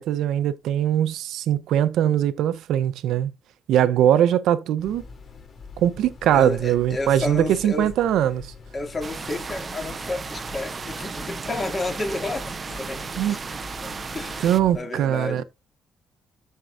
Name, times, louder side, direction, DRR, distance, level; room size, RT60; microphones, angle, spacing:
voice 1, 0.0-3.3 3.7-5.0 5.8-8.5 13.2-13.4 14.4-15.4, right 10 dB, 80° right, 0.7 m, -21 dB
sound 1, 4.8-14.8, left 4 dB, 45° left, 2.8 m, -43 dB
voice 2, 6.3-7.9 8.7-13.0 13.3-13.4 13.8-15.4, left 2 dB, 30° left, 2.3 m, -31 dB
sound 2, 9.0-14.6, right 5 dB, 35° right, 0.4 m, -35 dB
13.5 x 4.6 x 2.6 m
cardioid pair, 90°, 0 cm